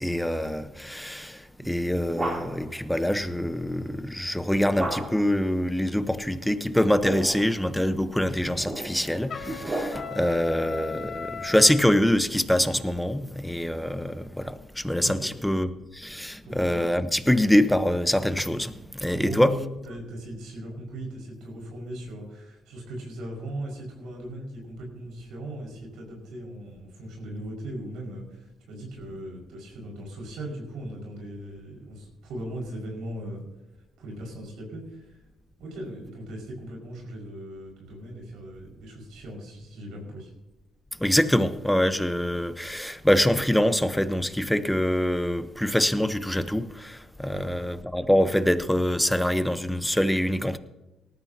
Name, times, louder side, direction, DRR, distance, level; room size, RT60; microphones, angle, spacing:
voice 1, 0.0-19.5 41.0-50.6, left 1 dB, 5° left, 1.0 m, -25 dB
sound 1, 1.6-2.8 4.8-5.4 6.7-7.6 8.3-10.3, right 1 dB, 30° right, 3.4 m, -34 dB
Trumpet, 9.3-11.8, left 6 dB, 55° left, 2.2 m, -37 dB
voice 2, 19.1-33.4 34.0-35.2 35.6-40.3 47.3-47.5, right 1 dB, 85° right, 5.7 m, -38 dB
19.0 x 13.5 x 2.9 m
cardioid pair, 90°, 0 cm